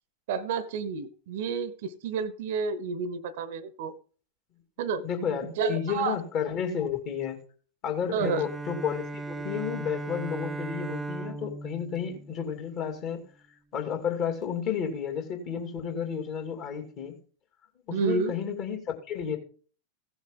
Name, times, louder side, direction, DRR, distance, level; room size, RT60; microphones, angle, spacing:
voice 1, 0.3-3.9 4.8-5.0 5.4-6.2 8.1-8.4 17.9-18.3, right 5 dB, 55° right, 1.0 m, -30 dB
voice 2, 5.0-7.4 7.8-13.2 13.7-17.1 17.9-19.4, left 7 dB, 40° left, 2.8 m, -32 dB
Bowed string instrument, 8.2-13.1, right 2 dB, 10° right, 0.5 m, -37 dB
16.5 x 7.1 x 3.8 m
figure-of-eight pair, 90°, 0 cm